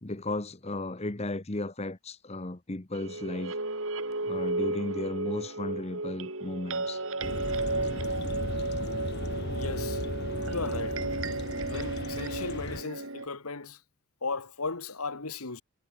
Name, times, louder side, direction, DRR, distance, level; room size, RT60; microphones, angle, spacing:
voice 1, 0.0-3.6 4.2-7.0, left 2 dB, 30° left, 1.0 m, -35 dB
sound 1, 2.9-13.3, right 2 dB, 65° right, 4.6 m, -33 dB
sound 2, 7.2-12.8, left 2 dB, 50° left, 1.4 m, -36 dB
voice 2, 9.5-10.0 10.4-11.0 11.7-13.8 14.2-15.6, left 4 dB, 80° left, 1.9 m, -36 dB
head